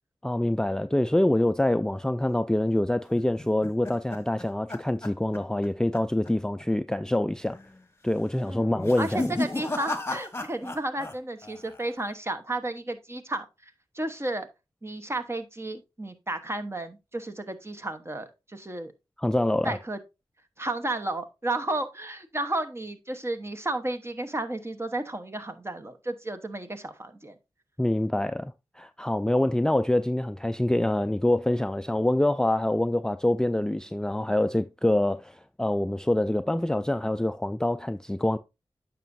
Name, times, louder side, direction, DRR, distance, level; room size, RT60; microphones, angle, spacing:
voice 1, 0.2-7.6 8.0-9.4 19.2-19.8 27.8-38.4, left 1 dB, 5° left, 0.4 m, -25 dB
sound 1, 3.2-5.7 5.9-6.3 6.6-6.7 7.5-7.9 8.7-11.2 11.4-12.0, left 2 dB, 25° left, 1.1 m, -34 dB
voice 2, 8.4-13.5 13.9-14.5 14.8-18.9 19.6-20.0 20.6-27.4, right 2 dB, 25° right, 1.1 m, -33 dB
9.1 x 6.0 x 2.6 m
cardioid pair, 50°, 9 cm